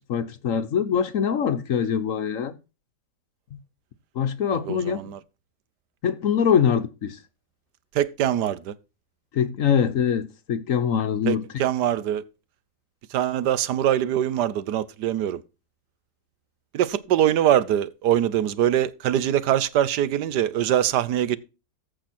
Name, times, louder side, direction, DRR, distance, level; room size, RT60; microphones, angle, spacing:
voice 1, 0.1-2.6 3.5-3.6 4.1-5.1 6.0-7.2 9.3-11.6, left 7 dB, 60° left, 1.1 m, -23 dB
voice 2, 4.7-5.2 7.9-8.7 11.3-12.2 13.1-15.4 16.7-21.4, right 11 dB, 75° right, 1.3 m, -23 dB
14.5 x 5.2 x 4.3 m
omnidirectional pair, 1.8 m